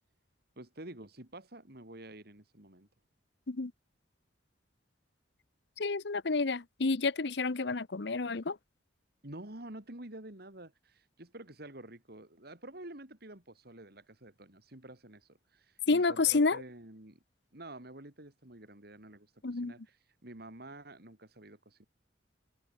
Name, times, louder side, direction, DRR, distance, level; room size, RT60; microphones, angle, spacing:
voice 1, 0.6-2.9 9.2-17.2 17.5-21.9, right 1 dB, 60° right, 3.4 m, -49 dB
voice 2, 5.8-8.6 15.9-16.6 19.4-19.7, left 3 dB, 65° left, 0.9 m, -29 dB
head